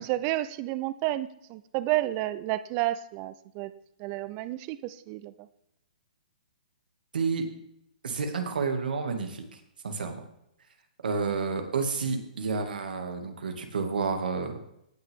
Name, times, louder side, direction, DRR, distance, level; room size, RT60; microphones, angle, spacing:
voice 1, 0.0-3.7 4.0-5.5, right 16 dB, 30° right, 15 dB, 0.6 m, -31 dB
voice 2, 7.1-7.4 8.0-9.4 9.8-10.2 11.0-14.6, right 4 dB, 80° right, 5 dB, 2.3 m, -30 dB
17.5 x 6.6 x 3.7 m, 0.78 s
hypercardioid pair, 150°, 5 cm